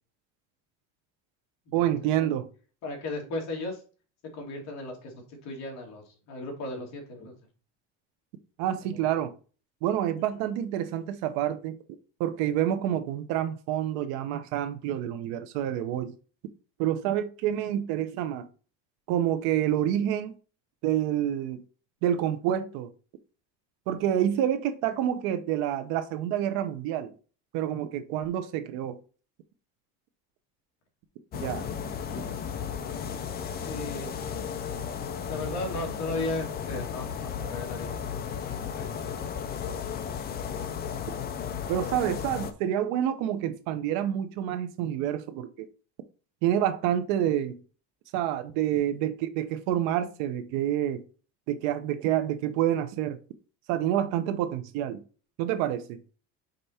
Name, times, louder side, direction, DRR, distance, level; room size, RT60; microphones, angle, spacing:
voice 1, 1.7-2.5 8.6-9.3 9.8-11.8 12.2-16.1 16.8-18.5 19.1-20.3 20.8-21.6 22.0-22.9 23.9-27.1 27.5-29.0 31.3-31.7 41.7-45.7 46.4-47.6 48.1-51.0 51.5-53.2 53.7-55.0 55.4-56.0, right 11 dB, 75° right, 0.9 m, -28 dB
voice 2, 2.8-3.8 4.3-7.3 32.0-32.4 33.7-34.2 35.3-38.0 38.4-39.1, left 2 dB, 45° left, 2.3 m, -36 dB
sound 1, 31.3-42.5, left 7 dB, 25° left, 0.6 m, -34 dB
5.3 x 4.5 x 4.2 m
cardioid pair, 165°, 36 cm